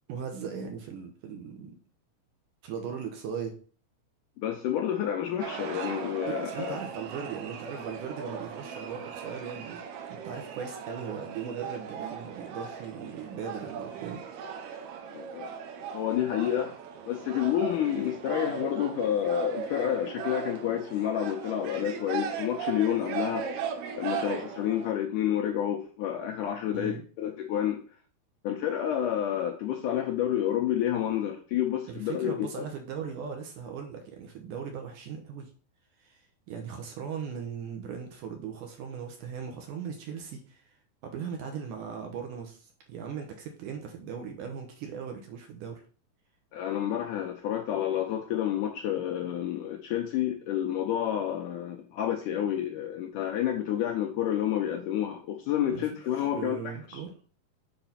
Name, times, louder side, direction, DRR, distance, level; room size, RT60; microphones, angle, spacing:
voice 1, 0.1-1.8 2.6-3.6 6.3-9.8 10.1-14.2 26.7-27.0 31.9-35.5 36.0-40.7 41.0-45.8 55.7-55.9 56.3-57.1, right 7 dB, 70° right, 3 dB, 2.2 m, -38 dB
voice 2, 4.4-6.8 15.1-15.5 15.9-16.7 17.1-23.5 23.9-27.8 28.4-32.7 46.5-57.0, left 10 dB, 80° left, 3 dB, 1.9 m, -29 dB
sound 1, 5.4-24.9, right 7 dB, 90° right, 2.9 m, -38 dB
7.0 x 4.0 x 5.7 m, 0.40 s
omnidirectional pair, 4.4 m